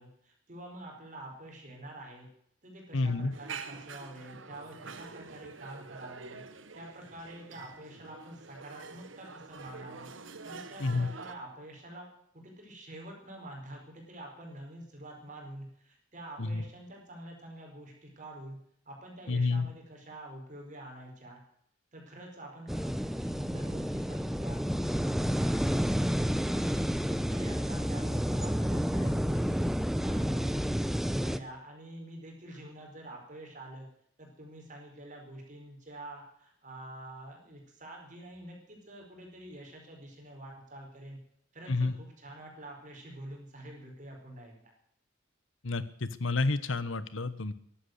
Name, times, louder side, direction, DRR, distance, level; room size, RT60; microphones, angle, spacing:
voice 1, 0.0-2.3 2.6-6.4 6.7-10.1 10.4-12.1 12.3-18.6 18.8-21.4 21.9-33.9 34.2-41.2 41.5-44.7, right 1 dB, 40° right, 1 dB, 4.6 m, -47 dB
voice 2, 2.9-3.3 10.8-11.1 16.4-16.6 19.3-19.7 41.7-41.9 45.6-47.5, left 3 dB, 80° left, 15 dB, 1.2 m, -29 dB
sound 1, 3.3-11.4, right 5 dB, 75° right, 1.3 m, -46 dB
sound 2, 22.7-31.4, equal, ahead, 0.7 m, -30 dB
15.0 x 11.5 x 8.1 m, 0.70 s
head